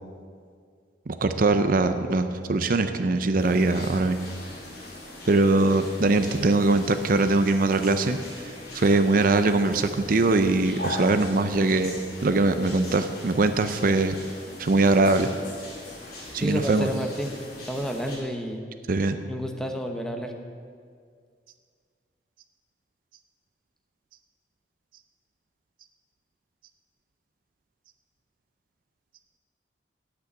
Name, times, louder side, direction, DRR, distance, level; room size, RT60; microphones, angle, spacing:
voice 1, 1.1-4.2 5.3-11.9 12.2-14.2 14.6-15.3 16.3-16.9 18.9-19.2, right 2 dB, 50° right, 9 dB, 0.5 m, -22 dB
sound 1, 3.4-18.2, left 2 dB, 60° left, 3.3 m, -41 dB
voice 2, 16.4-17.3 17.6-18.6 19.3-20.3, equal, 5° left, 4 dB, 0.9 m, -30 dB
9.3 x 8.2 x 8.5 m, 2.1 s
head